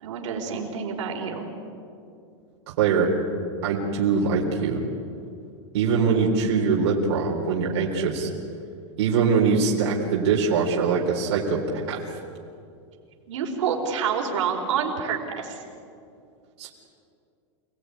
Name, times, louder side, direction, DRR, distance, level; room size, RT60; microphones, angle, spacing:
voice 1, 0.0-1.5 13.3-15.6, right 6 dB, 75° right, 1 dB, 4.5 m, -28 dB
voice 2, 2.8-3.1 3.6-4.8 5.7-8.3 9.0-11.6 11.9-12.0 16.6-16.7, right 5 dB, 60° right, -3 dB, 4.0 m, -22 dB
28.0 x 18.5 x 9.6 m, 2.5 s
supercardioid pair, 170°, 16 cm